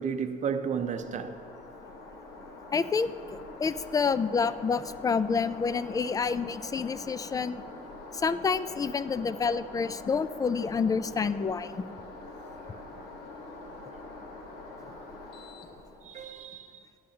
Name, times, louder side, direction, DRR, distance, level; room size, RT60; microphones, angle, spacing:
voice 1, 0.0-1.3 12.7-12.8 16.0-16.8, right 6 dB, 45° right, 0.6 m, -33 dB
sound 1, 0.8-16.4, left 2 dB, 80° left, 1.4 m, -45 dB
voice 2, 2.7-7.6 8.1-11.7, left 5 dB, 20° left, 0.3 m, -28 dB
15.0 x 10.0 x 2.8 m
cardioid pair, 110°, 17 cm